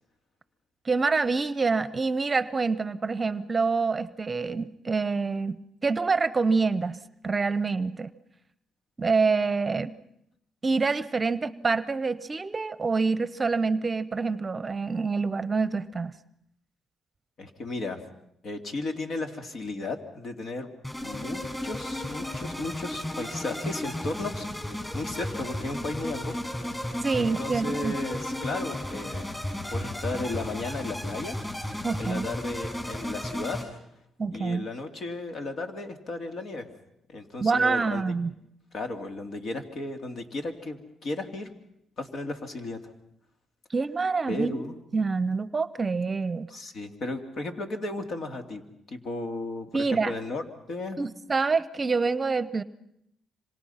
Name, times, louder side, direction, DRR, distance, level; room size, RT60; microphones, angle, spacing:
voice 1, 0.8-7.0 7.2-8.1 9.0-9.9 10.6-16.1 27.0-27.9 31.8-32.3 34.2-34.7 37.4-38.3 43.7-44.6 44.9-46.5 49.7-50.1 51.0-52.6, right 4 dB, 30° right, 16 dB, 0.8 m, -26 dB
voice 2, 17.4-18.0 18.4-20.7 21.0-24.5 24.9-26.4 27.1-29.2 29.7-31.4 32.0-33.6 34.3-36.7 37.1-38.0 38.7-41.5 42.0-42.9 44.3-44.8 46.5-48.6 48.9-51.0, left 2 dB, 60° left, 6 dB, 2.8 m, -34 dB
sound 1, 20.8-33.6, left 1 dB, 15° left, 6.9 m, -34 dB
26.5 x 26.0 x 5.8 m, 0.77 s
cardioid pair, 90°, 0 cm